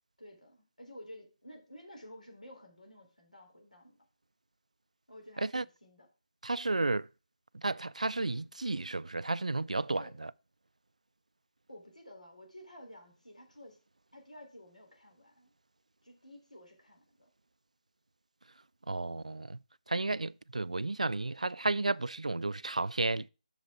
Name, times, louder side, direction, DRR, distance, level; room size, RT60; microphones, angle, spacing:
voice 1, 0.2-4.1 5.1-6.1 9.9-10.1 11.7-13.8 14.1-15.5 16.0-17.3, left 1 dB, 85° left, 3.5 m, -52 dB
voice 2, 6.4-7.1 7.5-10.0 18.9-19.6 19.9-23.3, right 2 dB, 70° right, 0.3 m, -32 dB
6.9 x 5.3 x 6.0 m
figure-of-eight pair, 150°, 4 cm